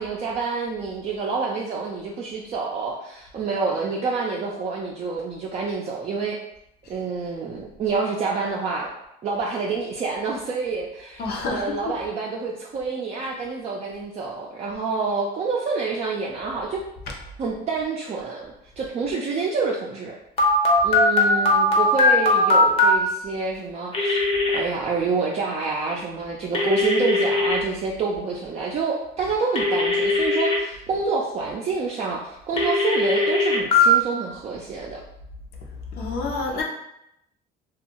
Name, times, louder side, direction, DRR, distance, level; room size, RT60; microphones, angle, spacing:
voice 1, 0.0-6.4 6.9-8.9 9.2-16.8 17.4-20.2 20.5-20.6 20.8-24.2 24.5-35.0, right 4 dB, 40° right, -3 dB, 0.4 m, -28 dB
voice 2, 11.2-11.9 17.1-17.2 29.2-29.3 35.9-36.6, left 3 dB, 70° left, 0 dB, 0.7 m, -29 dB
Telephone, 20.4-22.9 23.9-24.6 26.5-27.6 29.6-30.6 32.6-33.8, left 3 dB, 35° left, 0.7 m, -19 dB
2.5 x 2.3 x 2.9 m, 0.81 s
cardioid pair, 110°, 17 cm